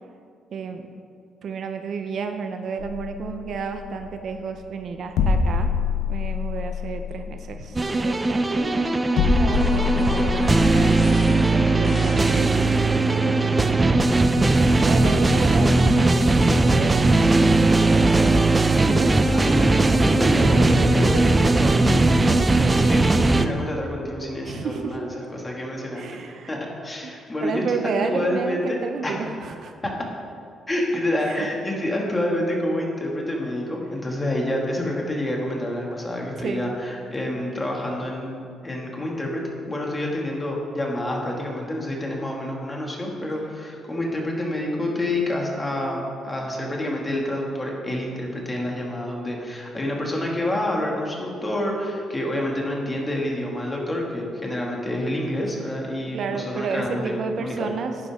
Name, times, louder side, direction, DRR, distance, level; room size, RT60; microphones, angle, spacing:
voice 1, 0.5-0.9 1.4-5.7 6.1-8.9 9.4-13.5 14.8-18.4 18.9-19.3 24.4-25.0 26.0-26.6 27.0-29.7 31.2-31.5 36.4-36.7 56.1-57.9, right 5 dB, 60° right, 6 dB, 0.7 m, -31 dB
sound 1, 2.8-16.1, left 5 dB, 85° left, 0.9 m, -28 dB
sound 2, 7.8-23.5, right 2 dB, 20° right, 0.6 m, -19 dB
sound 3, 8.6-13.1, left 2 dB, 40° left, 1.2 m, -36 dB
voice 2, 19.3-26.2 26.5-27.8 28.1-28.8 29.0-29.1 29.8-29.9 30.7-57.7, left 1 dB, 20° left, -1 dB, 2.3 m, -28 dB
11.5 x 9.6 x 3.7 m, 2.3 s
cardioid pair, 90°, 0 cm